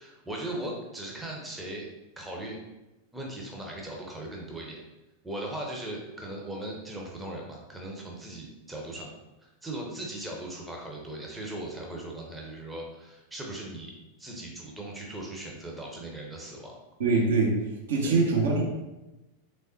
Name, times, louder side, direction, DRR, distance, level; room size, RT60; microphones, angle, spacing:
voice 1, 0.0-1.9 2.2-2.6 3.1-4.8 5.2-9.1 9.4-13.9 14.2-16.8 18.0-18.2, right 1 dB, 10° right, -2 dB, 0.7 m, -38 dB
voice 2, 17.0-17.5 17.9-18.6, right 3 dB, 65° right, -2 dB, 0.9 m, -23 dB
3.6 x 3.4 x 2.7 m, 1.0 s
figure-of-eight pair, 90°, 0 cm